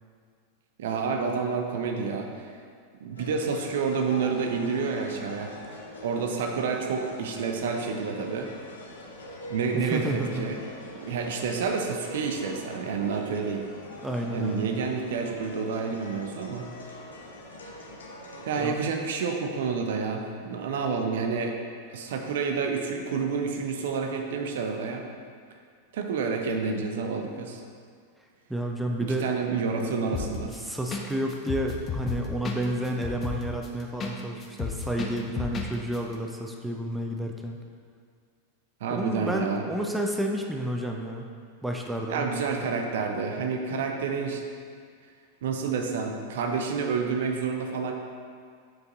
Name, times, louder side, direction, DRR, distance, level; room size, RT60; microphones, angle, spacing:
voice 1, 0.8-2.3 3.0-5.5 6.0-8.5 9.5-10.6 11.0-13.7 14.3-16.7 18.4-21.6 21.9-25.0 25.9-27.6 29.2-30.5 38.8-39.6 42.1-44.4 45.4-47.9, right 5 dB, 55° right, 3 dB, 0.7 m, -29 dB
sound 1, 3.2-18.7, left 1 dB, 70° left, 1.0 m, -43 dB
voice 2, 9.7-10.6 14.0-14.8 18.6-18.8 28.5-29.2 30.5-37.6 38.9-41.3 41.6-42.2, right 1 dB, 5° right, 1 dB, 0.6 m, -31 dB
sound 2, 30.1-30.6 30.9-31.0 31.3-34.1 34.4-35.7 35.9-36.0, left 6 dB, 25° left, 0.8 m, -32 dB
7.6 x 5.3 x 4.0 m, 2.1 s
figure-of-eight pair, 90°, 0 cm